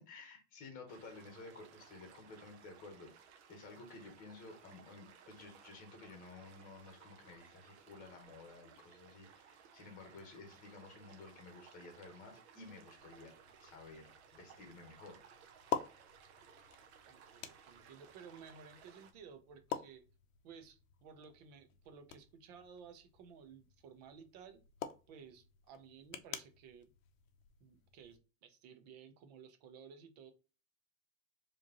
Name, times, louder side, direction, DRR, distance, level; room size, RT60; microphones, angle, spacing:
voice 1, 0.0-3.1 3.5-13.3 13.6-15.2, left 3 dB, 20° left, 3 dB, 1.2 m, -53 dB
sound 1, 0.9-19.1, right 7 dB, 45° right, 0.9 m, -60 dB
sound 2, 13.0-28.2, left 9 dB, 60° left, 0.7 m, -48 dB
voice 2, 17.1-20.1 20.4-24.6 25.1-26.9 27.6-30.3, right 6 dB, 30° right, 8 dB, 0.6 m, -56 dB
4.9 x 3.0 x 2.9 m, 0.32 s
supercardioid pair, 160°, 44 cm